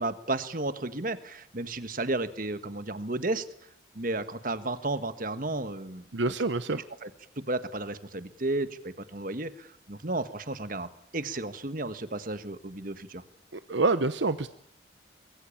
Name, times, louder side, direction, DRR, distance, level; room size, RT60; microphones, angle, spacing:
voice 1, 0.0-3.4 3.9-6.0 6.7-7.1 7.4-13.2, right 2 dB, 45° right, 11 dB, 1.5 m, -33 dB
voice 2, 6.1-6.8 13.5-14.5, right 3 dB, 70° right, 12 dB, 0.9 m, -27 dB
24.0 x 22.5 x 8.7 m, 0.72 s
head